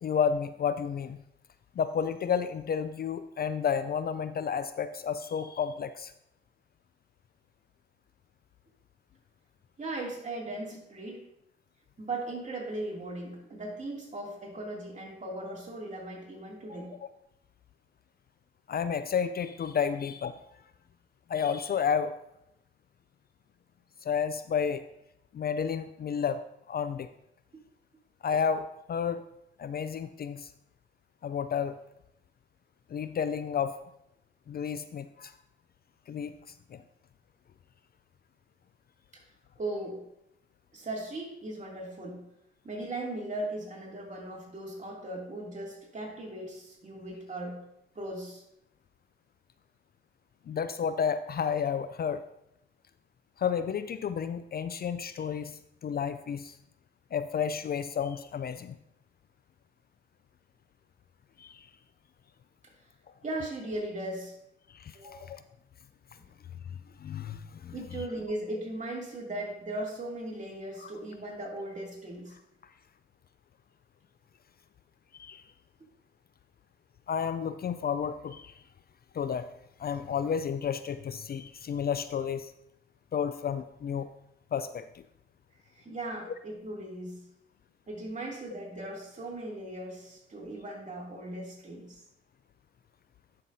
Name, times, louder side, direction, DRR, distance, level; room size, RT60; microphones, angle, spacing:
voice 1, 0.0-1.2 1.8-6.1 18.7-20.3 21.3-22.2 24.0-24.8 25.3-26.4 26.7-27.1 28.2-29.2 29.6-30.5 31.2-31.8 32.9-33.8 34.5-35.3 36.1-36.3 36.7-36.8 50.5-52.2 53.4-56.6 57.1-58.8 61.4-61.7 64.7-65.4 67.0-67.7 70.8-70.9 75.1-75.4 77.1-78.6 79.1-79.5 79.8-82.5 83.1-84.1 84.5-85.0, left 7 dB, 45° left, 12 dB, 0.4 m, -31 dB
voice 2, 9.8-11.2 12.0-17.0 39.1-39.2 39.6-40.0 40.7-42.2 42.6-47.6 47.9-48.4 63.2-64.4 64.9-65.4 67.7-72.4 85.7-87.2 87.9-92.0, right 1 dB, 35° right, -3 dB, 2.7 m, -38 dB
11.0 x 5.8 x 2.7 m, 0.80 s
cardioid pair, 75°, 21 cm